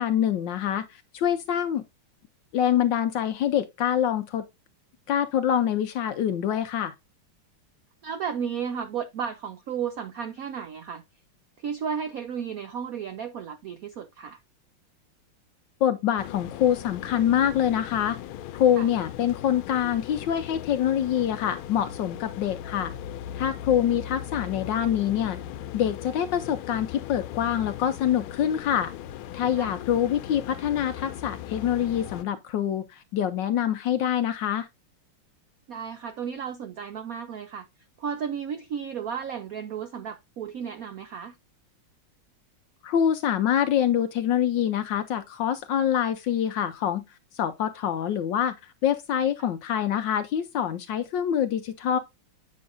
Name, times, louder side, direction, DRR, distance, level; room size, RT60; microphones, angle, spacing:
voice 1, 0.0-1.8 2.5-4.4 5.1-6.9 15.8-18.2 18.5-22.9 23.3-25.4 25.7-28.9 29.3-34.7 42.8-47.0 47.3-48.5 48.8-52.0, left 10 dB, 70° left, 1.2 m, -25 dB
voice 2, 8.0-11.0 11.6-14.4 18.8-18.9 29.6-29.7 35.7-37.7 38.0-41.4, right 7 dB, 85° right, 0.7 m, -33 dB
sound 1, 16.2-32.2, left 11 dB, 85° left, 1.4 m, -38 dB
8.5 x 6.3 x 2.5 m
omnidirectional pair, 2.2 m